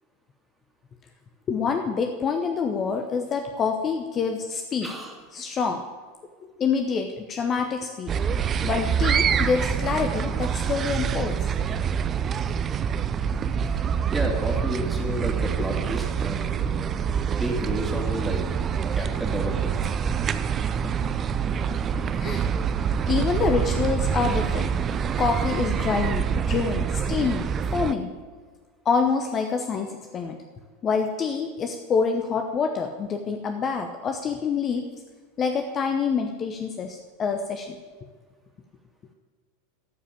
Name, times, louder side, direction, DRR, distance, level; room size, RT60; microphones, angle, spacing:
voice 1, 1.5-4.9 5.3-5.8 6.6-8.1 8.6-11.4 22.2-22.4 22.8-24.7 25.2-27.5 27.7-28.1 28.8-30.4 30.8-34.9 35.4-37.7, left 5 dB, 30° left, 5 dB, 0.9 m, -26 dB
voice 2, 4.8-5.1 14.1-16.8 17.4-18.4 18.9-19.7, equal, 5° right, -1 dB, 2.6 m, -31 dB
sound 1, 8.1-27.9, right 7 dB, 30° right, 0.5 m, -26 dB
13.5 x 5.0 x 8.4 m, 1.5 s
figure-of-eight pair, 85°, 0 cm